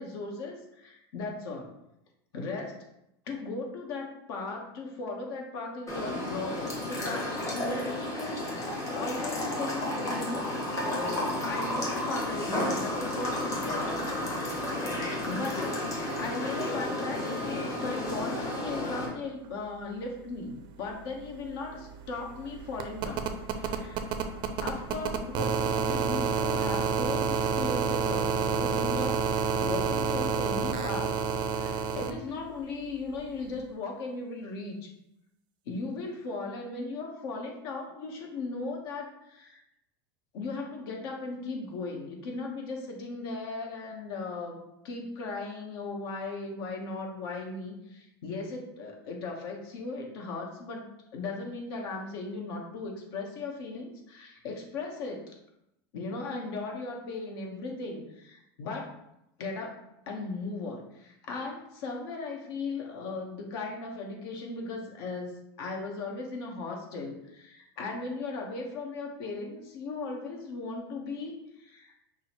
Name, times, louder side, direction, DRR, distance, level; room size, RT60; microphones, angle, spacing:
voice 1, 0.0-1.7 2.3-2.8 3.3-10.5 10.8-13.9 14.4-14.5 15.3-15.7 16.2-23.3 23.5-24.1 24.6-31.1 31.5-34.9 35.6-39.6 40.3-50.8 51.1-55.3 55.9-58.9 59.4-59.7 60.1-71.9, left 3 dB, 70° left, 1 dB, 1.1 m, -37 dB
sound 1, 5.9-19.1, left 1 dB, 25° left, 1.1 m, -32 dB
sound 2, 20.9-21.0 21.2-32.1 33.5-33.6, right 6 dB, 35° right, 0.4 m, -29 dB
6.0 x 2.1 x 2.9 m, 0.82 s
supercardioid pair, 145°, 13 cm